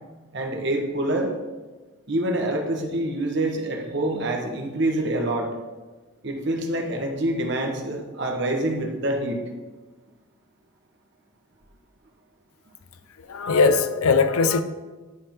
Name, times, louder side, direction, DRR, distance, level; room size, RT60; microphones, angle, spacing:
voice 1, 0.3-1.3 2.1-5.5 6.2-9.4, right 1 dB, 55° right, 1 dB, 1.2 m, -26 dB
voice 2, 13.3-14.6, left 4 dB, 85° left, 10 dB, 0.6 m, -20 dB
9.6 x 3.7 x 5.8 m, 1.3 s
head